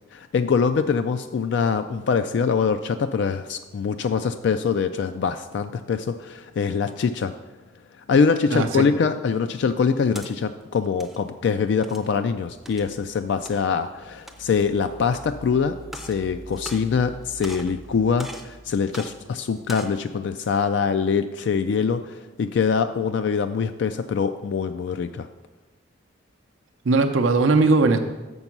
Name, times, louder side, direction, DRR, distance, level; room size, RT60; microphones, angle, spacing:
voice 1, 0.1-7.3 8.1-15.8 16.0-25.3, left 5 dB, 60° left, 9 dB, 0.3 m, -24 dB
voice 2, 8.5-8.9 26.8-28.0, right 3 dB, 80° right, 5 dB, 0.6 m, -19 dB
sound 1, 10.1-10.3 10.8-11.2 11.8-12.1 12.7-12.9 13.5-13.6 14.2-14.6 15.1-15.2 15.8-16.2 16.5-17.1 17.4-17.8 18.2-18.5 18.9-19.1 19.6-20.0, right 1 dB, ahead, 0.5 m, -40 dB
sound 2, 13.8-19.7, right 2 dB, 85° left, 1.2 m, -46 dB
6.9 x 5.4 x 5.9 m, 1.2 s
head